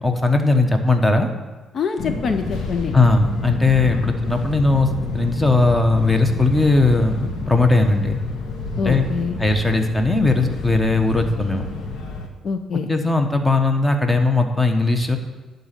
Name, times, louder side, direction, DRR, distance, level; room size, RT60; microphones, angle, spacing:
voice 1, 0.0-1.3 2.9-4.9 5.1-8.2 8.8-9.1 9.4-11.6 12.7-15.2, left 3 dB, 15° left, 5 dB, 1.1 m, -18 dB
voice 2, 1.7-2.9 8.8-9.4 12.4-12.9, left 5 dB, 55° left, 7 dB, 0.6 m, -25 dB
Fixed-wing aircraft airplane, 2.0-12.3, left 3 dB, 75° left, 1.4 m, -29 dB
11.0 x 4.1 x 7.5 m, 1.2 s
cardioid pair, 90°, 0 cm